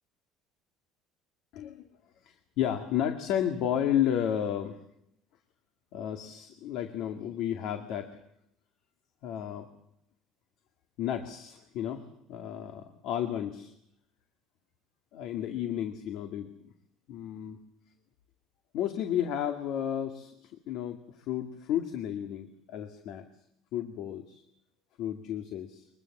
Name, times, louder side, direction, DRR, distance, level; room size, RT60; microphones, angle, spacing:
voice 1, 1.5-1.9 2.2-4.8 5.9-8.2 9.2-9.7 11.0-12.0 12.3-13.7 15.1-16.7 17.1-17.6 18.7-23.3 23.7-24.4 25.0-25.9, left 10 dB, 60° left, 6 dB, 2.1 m, -32 dB
24.0 x 21.5 x 7.3 m, 0.77 s
cardioid pair, 165°, 0 cm